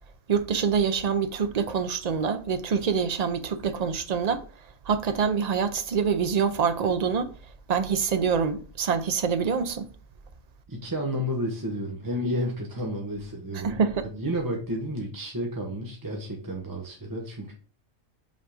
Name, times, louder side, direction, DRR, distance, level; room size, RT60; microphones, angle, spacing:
voice 1, 0.3-4.4 4.9-7.3 7.7-9.9 13.5-14.0, right 6 dB, 55° right, 0.4 m, -25 dB
voice 2, 10.7-13.8 14.1-17.5, equal, 20° right, 0.8 m, -31 dB
5.5 x 3.6 x 4.9 m
omnidirectional pair, 1.4 m